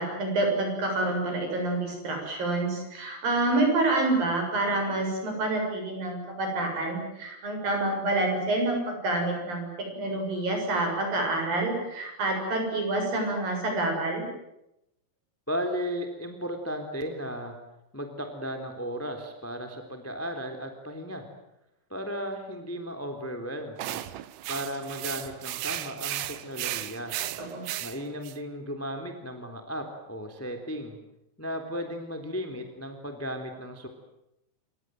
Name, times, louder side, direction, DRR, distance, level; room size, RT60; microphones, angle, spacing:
voice 1, 0.0-14.3 27.5-27.6, right 2 dB, 50° right, 3 dB, 8.9 m, -27 dB
voice 2, 15.5-17.5 17.9-21.2 21.9-24.0 24.5-27.1 27.8-31.0 31.4-33.9, equal, 5° left, 5 dB, 2.5 m, -35 dB
sound 1, 23.8-28.4, right 14 dB, 75° right, 3.1 m, -35 dB
28.5 x 25.0 x 7.8 m, 0.85 s
omnidirectional pair, 5.2 m